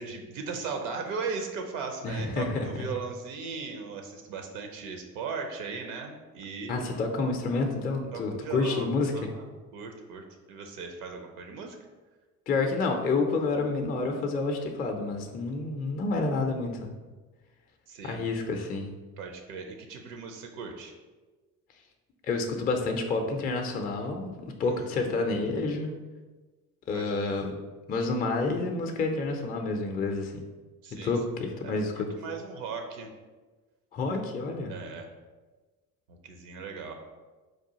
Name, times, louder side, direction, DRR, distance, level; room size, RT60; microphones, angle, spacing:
voice 1, 0.0-6.9 8.1-9.5 9.7-11.8 17.9-18.2 19.2-20.9 24.6-25.1 26.9-27.4 30.8-31.1 31.6-33.1 34.7-35.1 36.2-36.9, right 5 dB, 75° right, 4 dB, 0.6 m, -38 dB
voice 2, 2.0-2.9 6.7-9.3 12.5-16.9 18.0-18.9 22.3-24.3 24.6-25.9 26.9-27.5 27.9-30.3 31.0-32.1 33.9-34.7, left 3 dB, 20° left, 4 dB, 0.4 m, -29 dB
4.5 x 2.3 x 2.7 m, 1.3 s
hypercardioid pair, 60°, 45 cm